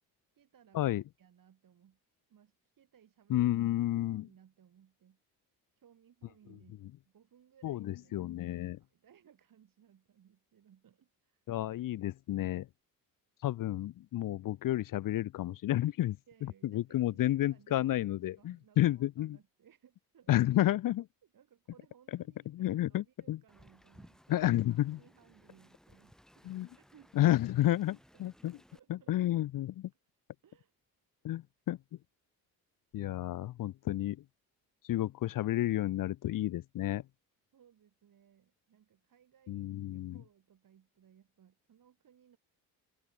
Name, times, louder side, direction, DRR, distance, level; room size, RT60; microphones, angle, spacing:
voice 1, 0.3-2.0 2.3-3.6 3.9-5.2 5.8-11.4 16.3-20.4 21.2-27.7 28.1-29.2 29.6-29.7 30.4-30.7 37.5-42.4, right 9 dB, 60° right, 4.9 m, -64 dB
voice 2, 3.3-4.3 7.6-8.8 11.5-12.7 13.4-16.2 16.7-19.4 20.3-21.1 22.5-23.4 24.3-25.0 26.4-26.7 27.2-28.6 28.9-29.9 31.2-31.8 32.9-34.2 34.9-37.0 39.5-40.2, left 14 dB, 60° left, 0.6 m, -31 dB
Wind, 23.5-28.8, equal, ahead, 4.7 m, -61 dB
supercardioid pair, 70°, 38 cm